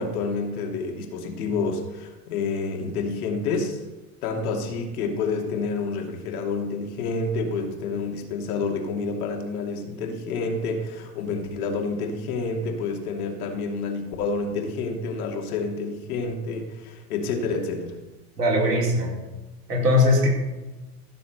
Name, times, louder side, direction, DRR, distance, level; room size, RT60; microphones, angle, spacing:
voice 1, 0.0-3.8 4.2-18.0, left 4 dB, 70° left, 2 dB, 2.9 m, -28 dB
voice 2, 18.4-19.1 19.7-20.3, left 2 dB, 80° right, -3 dB, 4.9 m, -20 dB
15.5 x 6.9 x 6.7 m, 1.1 s
hypercardioid pair, 80°, 46 cm